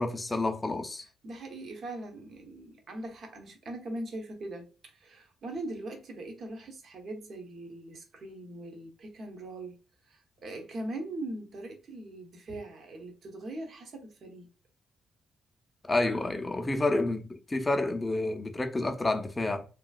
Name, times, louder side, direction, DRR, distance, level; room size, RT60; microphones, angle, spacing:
voice 1, 0.0-1.0 15.9-19.7, left 2 dB, 20° left, 0.5 m, -29 dB
voice 2, 1.2-9.8 10.1-14.5, right 2 dB, 55° right, 0.9 m, -41 dB
3.0 x 2.3 x 2.3 m
cardioid pair, 90°, 0 cm